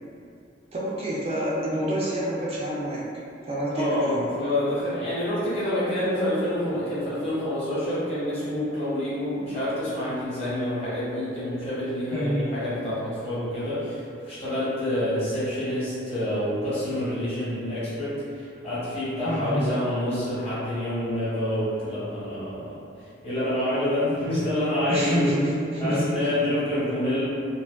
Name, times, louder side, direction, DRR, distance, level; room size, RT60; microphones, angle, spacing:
voice 1, 0.7-3.0 3.5-4.3 12.1-12.5 19.2-19.7 24.9-26.1, equal, 35° right, -6 dB, 0.3 m, -27 dB
voice 2, 3.7-22.7 23.2-25.3 25.8-27.2, left 1 dB, 35° left, -11 dB, 0.9 m, -27 dB
2.4 x 2.2 x 2.2 m, 2.5 s
head